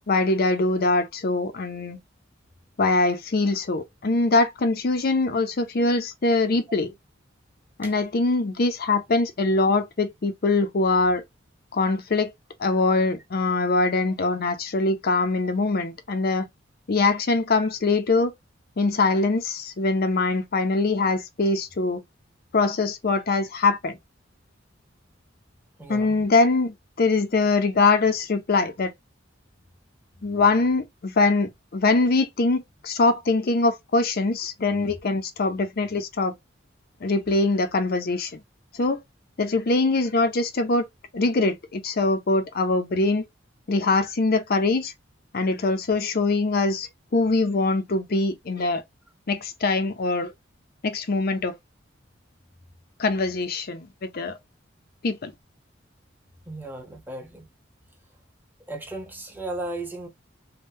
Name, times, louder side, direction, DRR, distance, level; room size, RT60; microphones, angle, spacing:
voice 1, 0.1-2.0 2.8-6.9 7.8-11.2 11.7-12.3 12.6-16.5 16.9-18.3 18.8-22.0 22.5-24.0 25.9-28.9 30.2-36.3 37.0-38.4 38.7-39.0 39.4-40.9 41.1-43.2 43.7-44.9 45.3-48.8 49.3-50.3 50.8-51.5 53.0-54.4 55.0-55.3, left 3 dB, 50° left, 0.6 m, -23 dB
voice 2, 25.8-26.3 56.5-57.5 58.7-60.1, right 2 dB, 10° right, 0.9 m, -35 dB
3.6 x 2.2 x 2.6 m
head